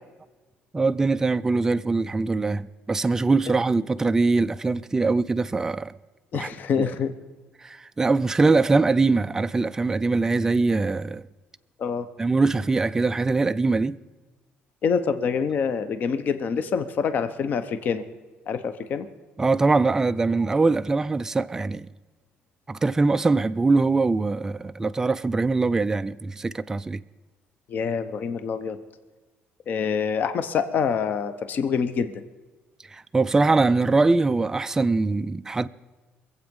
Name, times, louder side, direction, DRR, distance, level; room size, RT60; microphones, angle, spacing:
voice 1, 0.7-6.0 6.3-6.5 6.8-7.0 7.6-11.2 12.2-14.0 19.4-21.9 22.7-27.0 32.9-35.7, right 3 dB, 10° right, 0.3 m, -22 dB
voice 2, 6.3-7.1 11.8-12.1 14.8-18.0 18.5-19.1 27.7-28.8 29.7-32.2, left 6 dB, 45° left, 0.8 m, -26 dB
24.0 x 8.1 x 5.3 m
cardioid pair, 170°, 4 cm